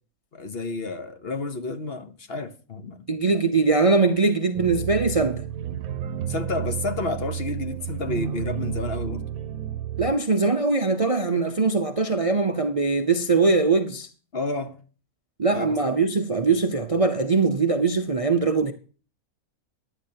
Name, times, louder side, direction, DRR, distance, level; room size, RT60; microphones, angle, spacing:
voice 1, 0.3-3.0 6.3-9.2 14.3-14.8 15.5-15.7, left 3 dB, 45° left, 1.1 m, -30 dB
voice 2, 3.1-5.4 10.0-14.1 15.4-18.7, right 4 dB, 35° right, 0.6 m, -21 dB
sound 1, 4.5-10.2, right 10 dB, 75° right, 1.1 m, -31 dB
15.5 x 11.0 x 2.8 m
omnidirectional pair, 1.5 m